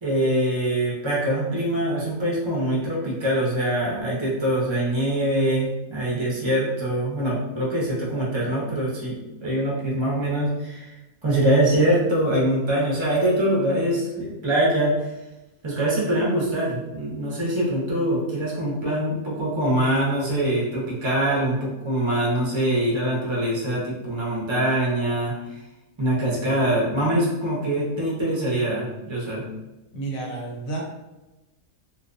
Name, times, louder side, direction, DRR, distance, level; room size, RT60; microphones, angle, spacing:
voice 1, 0.0-10.9 11.2-15.1 15.6-25.6 26.0-29.5, right 1 dB, 30° right, -5 dB, 0.5 m, -23 dB
voice 2, 29.9-30.8, right 3 dB, 80° left, -2 dB, 1.1 m, -30 dB
2.5 x 2.1 x 2.5 m, 1.0 s
omnidirectional pair, 1.4 m